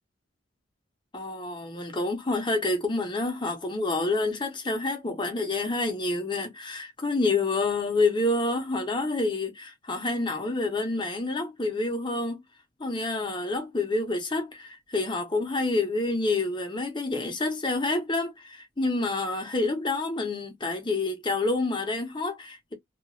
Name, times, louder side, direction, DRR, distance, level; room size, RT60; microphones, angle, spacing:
voice 1, 1.1-12.4 12.8-22.7, left 2 dB, 25° left, 0.8 m, -28 dB
2.8 x 2.5 x 2.6 m
head